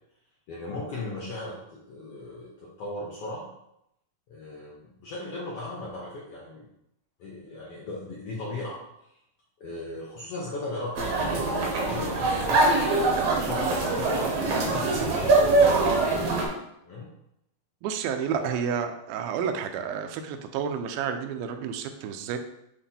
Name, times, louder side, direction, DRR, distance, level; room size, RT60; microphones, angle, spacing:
voice 1, 0.5-3.5 4.3-6.7 7.2-8.8 9.6-12.9 13.2-15.6 16.8-17.1 18.3-18.6, left 2 dB, 85° left, -5 dB, 1.3 m, -37 dB
sound 1, 11.0-16.5, right 3 dB, 70° right, 1.5 m, -23 dB
voice 2, 17.8-22.4, right 7 dB, 90° right, 7 dB, 2.4 m, -30 dB
7.7 x 3.0 x 4.2 m, 0.80 s
omnidirectional pair, 4.1 m